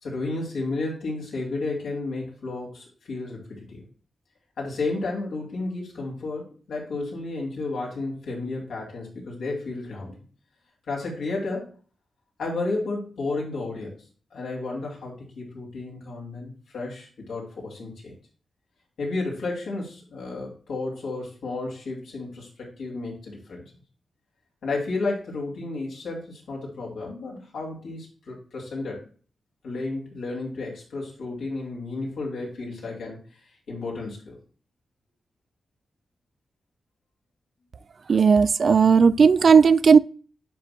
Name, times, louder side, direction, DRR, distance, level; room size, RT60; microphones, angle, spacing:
voice 1, 0.0-3.9 4.6-10.2 10.9-11.8 12.4-14.0 14.3-18.1 19.0-23.7 24.6-29.0 29.6-33.2 33.7-34.4, left 3 dB, 90° left, 2.7 m, -32 dB
voice 2, 38.1-40.0, right 5 dB, 65° right, 0.3 m, -15 dB
10.0 x 4.3 x 2.2 m
cardioid pair, 50°, 0 cm